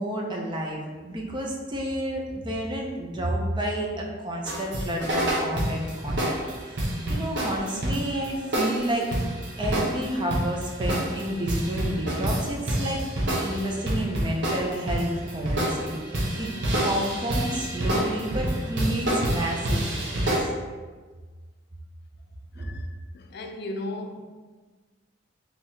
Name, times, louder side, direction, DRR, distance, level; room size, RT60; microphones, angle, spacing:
voice 1, 0.0-9.1 9.6-13.0 13.4-16.0 16.4-16.5 16.8-20.3 22.6-22.7, right 1 dB, 25° right, -1 dB, 0.6 m, -30 dB
sound 1, 4.5-20.4, right 1 dB, 60° right, 0.8 m, -28 dB
voice 2, 6.8-7.2 22.5-22.9 23.1-24.2, left 2 dB, 55° left, 4 dB, 0.4 m, -37 dB
3.6 x 2.8 x 4.2 m, 1.4 s
head